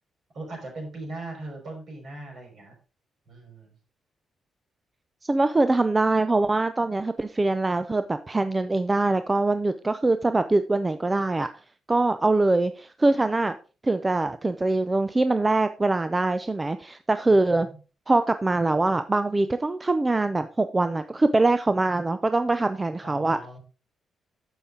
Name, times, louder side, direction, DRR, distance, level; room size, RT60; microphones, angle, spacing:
voice 1, 0.3-2.7 3.3-3.7 17.3-17.8 23.0-23.6, right 2 dB, 50° right, 1 dB, 5.2 m, -39 dB
voice 2, 5.2-11.5 11.9-13.5 13.8-17.7 18.1-23.4, right 2 dB, 15° right, 10 dB, 0.4 m, -23 dB
10.0 x 7.2 x 3.7 m, 0.34 s
cardioid pair, 150°, 0 cm